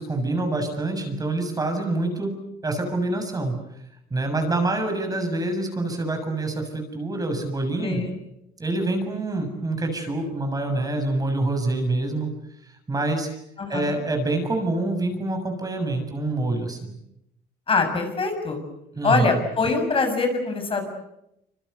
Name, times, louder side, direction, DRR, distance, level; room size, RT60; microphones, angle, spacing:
voice 1, 0.0-2.4 2.6-3.6 4.1-8.0 8.6-12.3 12.9-13.3 13.7-16.9 19.0-19.3, right 2 dB, 20° right, 6 dB, 7.1 m, -26 dB
voice 2, 7.8-8.2 13.6-14.0 17.7-18.6 19.0-20.9, left 4 dB, 30° left, 6 dB, 6.9 m, -23 dB
26.5 x 26.0 x 8.1 m, 0.83 s
cardioid pair, 110°, 17 cm